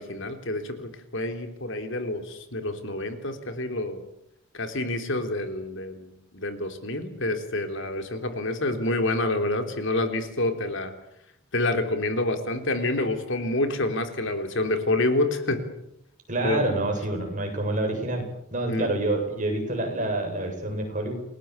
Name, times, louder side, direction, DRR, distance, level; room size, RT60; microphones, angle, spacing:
voice 1, 0.0-4.0 4.5-10.9 11.5-15.6 16.4-16.6 18.7-18.9, left 2 dB, 60° left, 7 dB, 3.7 m, -28 dB
voice 2, 16.3-18.2 18.5-21.1, right 2 dB, 35° right, 3 dB, 7.8 m, -27 dB
29.5 x 20.0 x 8.4 m, 0.77 s
head